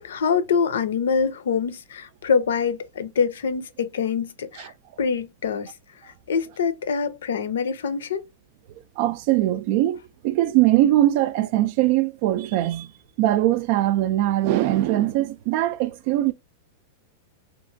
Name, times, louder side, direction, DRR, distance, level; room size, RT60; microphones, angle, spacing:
voice 1, 0.0-4.7 5.0-5.7 6.0-8.2, left 6 dB, 80° left, 0.5 m, -25 dB
voice 2, 9.0-12.9 13.2-16.3, right 14 dB, 55° right, 0.3 m, -21 dB
2.9 x 2.4 x 2.5 m
hypercardioid pair, 125°, 0 cm